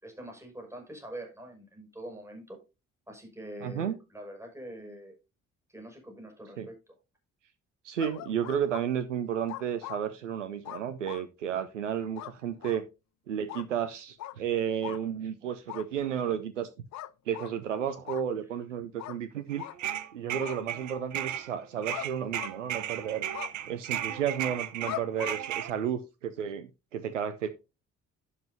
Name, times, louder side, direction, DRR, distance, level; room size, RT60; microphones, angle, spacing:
voice 1, 0.0-2.6 3.1-5.1 5.7-6.7, right 1 dB, 5° right, 2 dB, 6.4 m, -44 dB
voice 2, 3.6-4.0 6.6-6.7 7.8-12.9 13.3-16.7 17.3-19.6 20.1-23.3 23.6-27.5, right 9 dB, 85° right, 12 dB, 0.6 m, -32 dB
sound 1, 8.0-8.8 9.5-10.0 10.6-11.3 12.1-12.3 12.6-12.8 13.5-13.7 14.2-14.3 14.8-15.0 15.7-15.9 16.9-17.5 18.1-18.2 19.0-19.2 19.6-19.8 20.4-20.6 21.9-22.1 22.3-22.9 23.3-23.5 24.8-25.4, left 15 dB, 50° left, 0.6 m, -40 dB
sound 2, 19.5-21.5 21.8-25.7, right 11 dB, 50° right, 1.0 m, -35 dB
11.5 x 8.3 x 2.8 m, 0.28 s
figure-of-eight pair, 40°, 36 cm